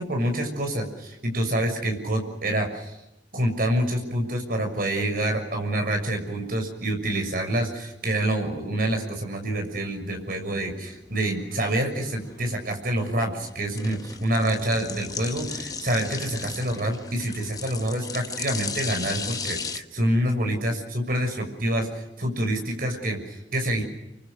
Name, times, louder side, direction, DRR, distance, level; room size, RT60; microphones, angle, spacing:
voice 1, 0.0-2.9 3.3-23.8, right 1 dB, 50° right, 4 dB, 6.5 m, -27 dB
sound 1, 10.9-19.8, left 5 dB, 20° left, 1.1 m, -36 dB
28.5 x 25.0 x 6.5 m, 0.92 s
head